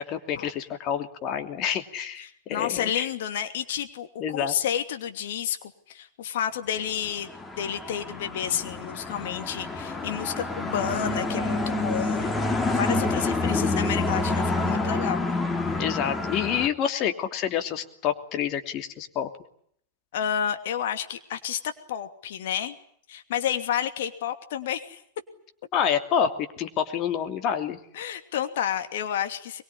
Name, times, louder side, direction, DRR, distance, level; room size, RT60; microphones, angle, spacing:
voice 1, 0.0-3.1 4.2-4.5 15.8-19.3 25.7-27.8, left 8 dB, 35° left, 7 dB, 2.9 m, -28 dB
voice 2, 2.2-5.6 5.9-12.3 12.7-15.3 20.1-22.8 23.1-25.0 27.9-29.6, left 9 dB, 55° left, 8 dB, 2.8 m, -30 dB
sound 1, 7.0-16.7, left 2 dB, 15° left, 2.8 m, -28 dB
23.5 x 23.0 x 10.0 m, 0.66 s
figure-of-eight pair, 90°, 0 cm